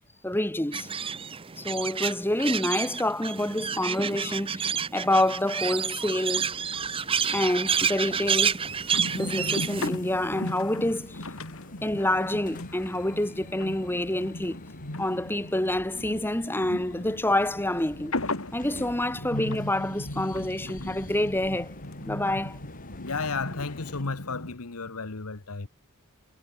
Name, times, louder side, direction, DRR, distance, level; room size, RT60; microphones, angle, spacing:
voice 1, 0.2-0.9 1.6-6.5 7.3-8.6 9.1-11.2 11.8-14.6 15.0-18.1 18.5-21.8 22.0-22.6, left 1 dB, 10° left, 1.5 m, -27 dB
sound 1, 0.7-9.9, right 7 dB, 25° right, 0.7 m, -29 dB
sound 2, 6.4-24.0, left 2 dB, 40° left, 2.3 m, -47 dB
sound 3, 8.9-24.6, left 1 dB, 65° left, 3.4 m, -37 dB
voice 2, 23.0-25.7, left 4 dB, 90° left, 1.3 m, -33 dB
head